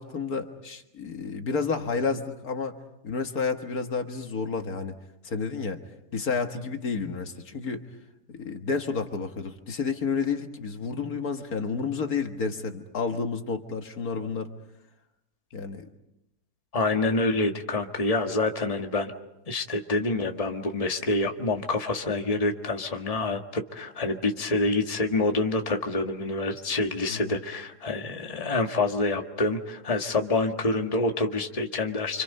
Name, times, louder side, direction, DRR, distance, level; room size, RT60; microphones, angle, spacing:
voice 1, 0.0-2.8 3.0-5.0 5.2-5.8 6.1-7.8 8.3-14.5 15.5-15.9 27.1-27.4, left 5 dB, 65° left, 5 dB, 2.0 m, -30 dB
voice 2, 16.7-19.1 19.5-32.2, left 2 dB, 25° left, 3 dB, 1.6 m, -27 dB
29.5 x 26.5 x 5.5 m, 0.88 s
omnidirectional pair, 1.7 m